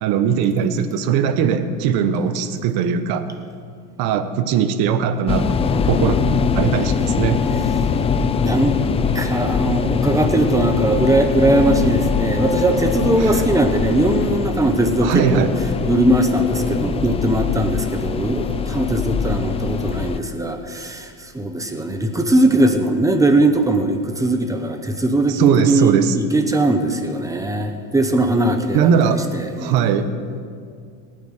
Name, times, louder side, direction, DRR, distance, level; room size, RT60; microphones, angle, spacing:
voice 1, 0.0-3.3 4.0-5.6 5.8-6.2 6.5-7.4 13.2-13.4 15.0-15.5 25.3-26.2 28.7-29.2 29.6-30.1, right 7 dB, 55° right, 10 dB, 1.2 m, -19 dB
sound 1, 5.3-20.2, left 5 dB, 15° left, 0.3 m, -22 dB
voice 2, 7.5-7.8 8.4-8.8 9.1-29.9, right 1 dB, 5° right, 6 dB, 1.1 m, -20 dB
18.5 x 9.3 x 6.6 m, 2.2 s
supercardioid pair, 130°, 44 cm